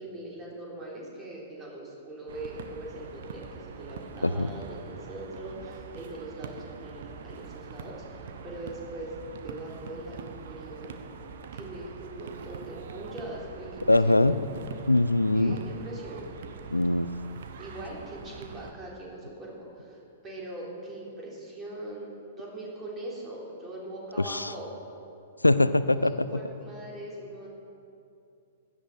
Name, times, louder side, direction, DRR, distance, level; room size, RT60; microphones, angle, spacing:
voice 1, 0.0-9.1 9.4-11.0 11.5-14.2 15.3-16.4 17.6-24.7 25.9-27.5, right 1 dB, 20° right, -4 dB, 3.6 m, -41 dB
sound 1, 2.3-18.7, right 5 dB, 55° right, 1.0 m, -43 dB
voice 2, 13.9-14.4 14.9-15.6 16.7-17.1 24.2-24.5 25.4-26.3, left 2 dB, 85° left, 14 dB, 0.5 m, -22 dB
16.0 x 11.5 x 4.9 m, 2.6 s
figure-of-eight pair, 105°, 0 cm